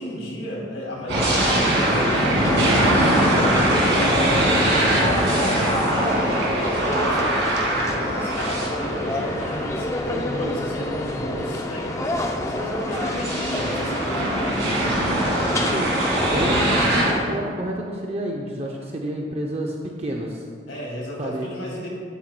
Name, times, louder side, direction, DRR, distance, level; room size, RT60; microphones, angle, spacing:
voice 1, 0.0-5.8 6.6-14.7 19.6-19.7 20.7-21.9, equal, 80° left, -3 dB, 2.3 m, -33 dB
sound 1, 1.1-10.1 10.7-10.8 12.2-17.1, right 1 dB, 70° right, 2.1 m, -22 dB
sound 2, 1.2-17.2, left 1 dB, 15° left, 0.5 m, -28 dB
voice 2, 15.6-20.4 21.2-21.5, right 1 dB, 30° right, 0 dB, 0.5 m, -30 dB
11.5 x 9.1 x 2.2 m, 2.1 s
head